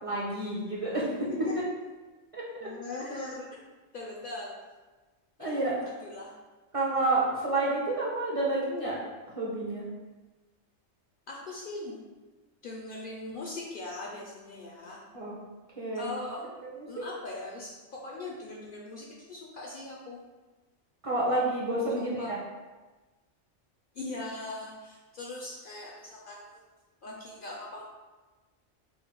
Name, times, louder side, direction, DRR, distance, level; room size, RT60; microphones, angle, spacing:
voice 1, 0.0-1.3 2.3-2.7 5.4-5.9 6.7-9.0 9.3-9.8 15.1-15.3 15.8-16.1 16.6-17.0 21.0-22.4, right 2 dB, 35° right, -6 dB, 0.8 m, -29 dB
voice 2, 1.3-1.6 2.6-3.6 3.9-4.6 5.4-5.7 6.0-6.3 11.3-12.0 12.6-15.0 15.9-16.4 16.9-20.2 22.0-22.3 23.9-26.6 27.0-27.8, left 2 dB, 55° left, -3 dB, 0.7 m, -40 dB
4.1 x 2.1 x 4.5 m, 1.2 s
omnidirectional pair, 1.2 m